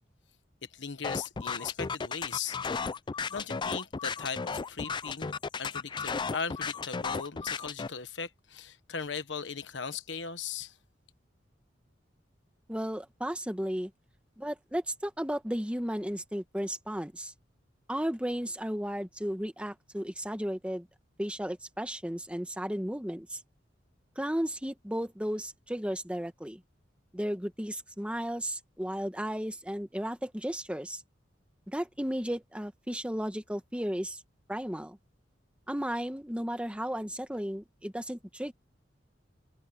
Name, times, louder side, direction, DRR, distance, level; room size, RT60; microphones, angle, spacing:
voice 1, 0.7-2.6 3.3-10.8, left 6 dB, 70° left, 1.3 m, -38 dB
sound 1, 1.0-7.9, left 5 dB, 25° left, 0.4 m, -34 dB
voice 2, 12.7-13.9 14.4-17.3 17.9-20.9 21.2-23.4 24.1-26.6 27.1-31.0 31.7-34.2 34.5-35.0 35.7-38.5, equal, 5° right, 1.7 m, -34 dB
open air
head